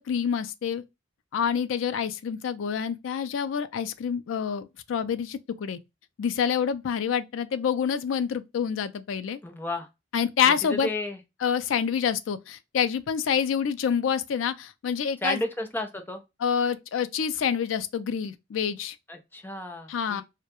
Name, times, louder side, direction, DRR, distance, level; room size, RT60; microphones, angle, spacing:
voice 1, 0.1-0.8 1.3-5.8 6.2-9.4 10.1-10.9 11.4-15.4 16.4-19.0 19.9-20.2, left 7 dB, 80° left, 0.3 m, -27 dB
voice 2, 9.4-9.9 10.4-11.2 15.2-16.2 19.1-20.2, left 1 dB, 10° left, 0.5 m, -32 dB
2.3 x 2.1 x 2.8 m
head